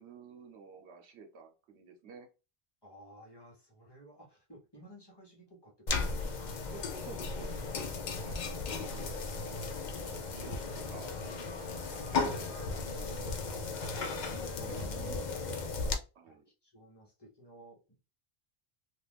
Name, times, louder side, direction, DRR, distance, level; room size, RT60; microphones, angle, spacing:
voice 1, 0.0-2.3 6.7-7.6 8.2-8.4 8.7-9.2 9.9-11.1 11.5-13.6 14.6-15.3 16.1-16.4, right 5 dB, 85° right, 3 dB, 1.1 m, -52 dB
voice 2, 2.8-6.6 14.2-15.5 16.3-18.1, equal, 25° left, -3 dB, 0.9 m, -56 dB
sound 1, 5.9-15.9, left 4 dB, 55° left, 0.6 m, -36 dB
2.5 x 2.4 x 3.3 m, 0.30 s
omnidirectional pair, 1.1 m